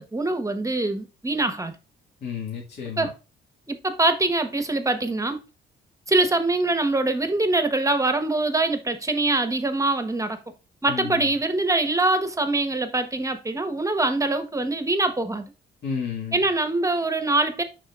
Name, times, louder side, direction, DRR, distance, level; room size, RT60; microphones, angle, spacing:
voice 1, 0.0-1.7 3.0-3.1 3.7-5.4 6.1-10.4 10.8-15.4 16.3-17.6, right 2 dB, 15° right, 1.1 m, -23 dB
voice 2, 2.2-3.1 10.9-11.4 15.8-16.4, left 6 dB, 55° left, 2.0 m, -32 dB
11.5 x 4.0 x 2.4 m
cardioid pair, 90°, 20 cm